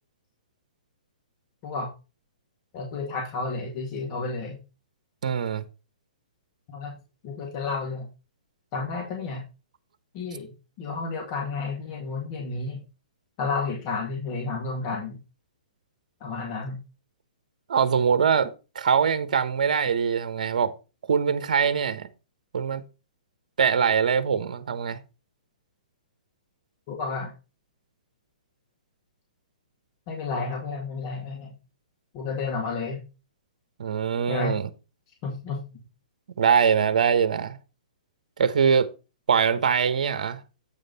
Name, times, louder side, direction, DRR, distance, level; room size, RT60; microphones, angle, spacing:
voice 1, 2.7-4.6 6.7-6.9 7.2-8.1 8.7-9.4 10.1-10.5 10.8-12.8 13.4-15.2 16.2-16.8 26.9-27.3 30.1-31.5 32.1-33.0 34.3-34.6 35.2-35.6, left 4 dB, 40° left, 2.3 m, -31 dB
voice 2, 5.2-5.6 17.7-20.7 21.1-22.1 22.5-22.8 23.6-25.0 33.8-34.7 36.4-37.6 38.4-38.9 39.3-40.4, right 7 dB, 65° right, 1.0 m, -23 dB
8.7 x 5.1 x 4.1 m
hypercardioid pair, 125°, 4 cm